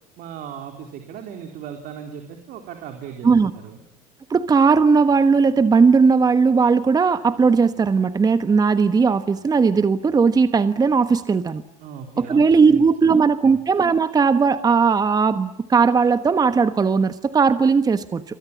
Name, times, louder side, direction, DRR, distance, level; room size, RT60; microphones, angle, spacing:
voice 1, 0.2-3.8 11.8-13.6, right 8 dB, 55° right, 5 dB, 4.0 m, -38 dB
voice 2, 4.3-11.6 12.2-18.2, right 5 dB, 20° right, 12 dB, 1.3 m, -17 dB
28.5 x 24.5 x 8.6 m, 0.79 s
supercardioid pair, 100°, 17 cm